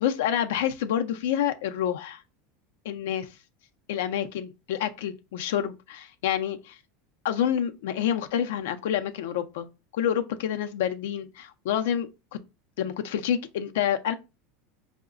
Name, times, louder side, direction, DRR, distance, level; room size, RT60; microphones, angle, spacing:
voice 1, 0.0-2.2 2.8-3.3 3.9-6.8 7.2-9.7 9.9-12.4 12.8-14.1, left 10 dB, 80° left, 0.4 m, -28 dB
4.6 x 2.1 x 2.4 m
supercardioid pair, 130°, 0 cm